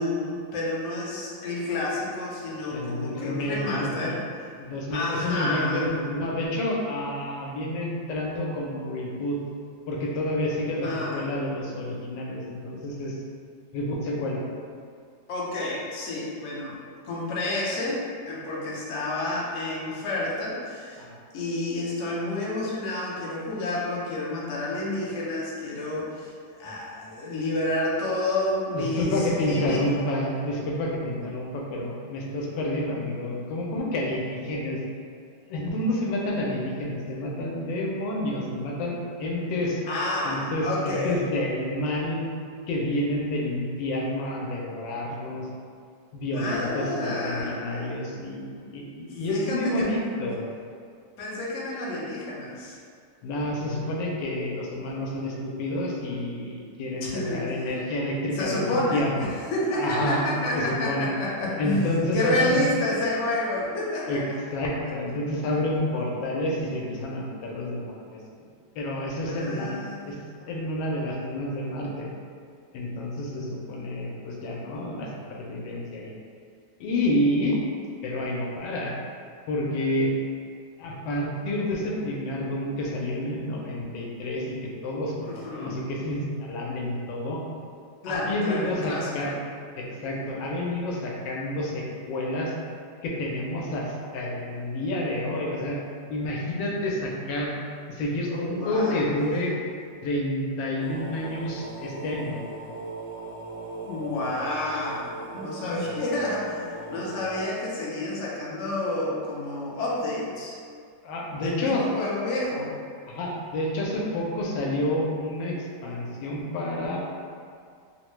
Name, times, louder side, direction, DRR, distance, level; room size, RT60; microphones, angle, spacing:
voice 1, 0.0-4.5 4.9-5.9 10.8-11.3 15.3-16.8 17.0-21.0 21.3-29.8 39.9-41.2 46.4-47.8 49.1-49.9 51.2-52.8 57.0-57.5 58.3-64.4 69.3-71.2 74.6-74.8 85.2-85.8 88.0-89.4 98.3-99.1 103.8-110.6 111.3-112.7, left 2 dB, 65° left, -5 dB, 0.7 m, -30 dB
voice 2, 2.7-4.2 4.6-9.4 9.9-13.2 13.7-14.4 21.0-21.1 28.7-34.8 35.5-39.8 40.3-42.2 42.7-45.5 46.1-50.5 53.2-59.3 59.7-60.2 60.5-61.1 61.6-62.5 64.1-64.2 64.5-68.2 68.8-69.8 70.0-70.2 70.5-72.1 72.7-76.1 76.8-77.6 78.0-78.9 79.5-80.1 80.8-87.4 88.1-89.3 89.8-92.5 93.0-95.8 96.1-97.6 97.9-99.6 100.0-102.4 111.0-111.8 113.1-117.1, left 1 dB, 85° left, -2 dB, 1.3 m, -29 dB
sound 1, 100.8-107.4, right 2 dB, 80° right, 0.4 m, -38 dB
3.4 x 2.1 x 3.0 m, 2.2 s
omnidirectional pair, 1.9 m